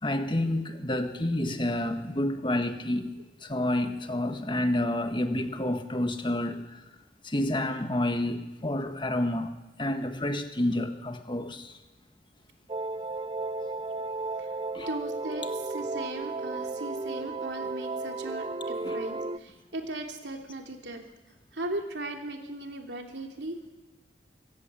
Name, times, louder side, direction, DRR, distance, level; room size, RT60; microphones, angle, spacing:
voice 1, 0.0-3.1 3.4-6.9 7.2-11.8 14.7-14.9 18.8-19.0, left 1 dB, 30° left, 1.6 m, -29 dB
sound 1, 12.7-19.4, right 3 dB, 30° right, 0.6 m, -34 dB
voice 2, 14.9-21.0 21.5-23.6, right 1 dB, 80° right, 3.1 m, -38 dB
25.0 x 16.0 x 7.6 m
head